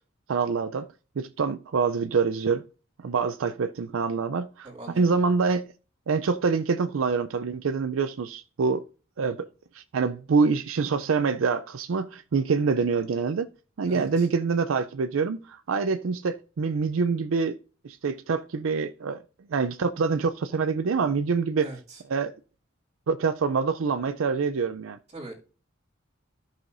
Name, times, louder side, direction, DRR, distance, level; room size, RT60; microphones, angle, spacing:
voice 1, 0.3-0.9 1.2-2.6 3.0-5.6 6.1-8.8 9.2-9.5 9.7-13.5 13.8-17.6 17.8-19.2 19.5-21.7 22.1-22.3 23.1-25.0, right 5 dB, 80° right, 0.4 m, -26 dB
voice 2, 4.6-5.0 13.9-14.3 21.6-22.0 25.1-25.3, right 2 dB, 35° right, 2.3 m, -41 dB
13.5 x 5.6 x 2.6 m
head